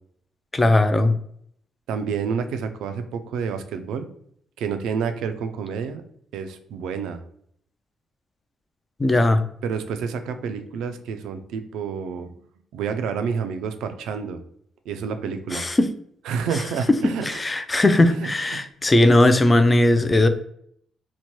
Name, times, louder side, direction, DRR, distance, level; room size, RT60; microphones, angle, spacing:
voice 1, 0.5-1.1 9.0-9.4 15.5-15.9 17.3-20.3, left 1 dB, 20° left, 9 dB, 0.3 m, -18 dB
voice 2, 1.9-4.1 4.6-6.0 6.3-7.2 9.6-12.4 12.7-14.4 14.9-15.7 16.2-17.4 18.1-18.6, right 6 dB, 85° right, 8 dB, 0.3 m, -29 dB
2.8 x 2.1 x 3.0 m, 0.67 s
cardioid pair, 90°, 0 cm